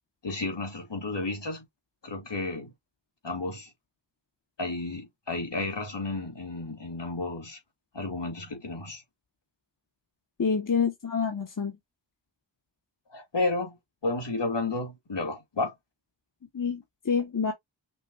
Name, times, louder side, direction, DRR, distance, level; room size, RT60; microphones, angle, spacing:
voice 1, 0.2-1.6 2.0-2.7 3.2-3.7 4.6-7.6 7.9-9.0 13.1-13.8 14.0-15.7, left 2 dB, 60° left, 2.7 m, -32 dB
voice 2, 10.4-11.7 16.5-17.5, left 6 dB, 40° left, 1.4 m, -27 dB
6.1 x 2.6 x 2.7 m
cardioid pair, 45°, 47 cm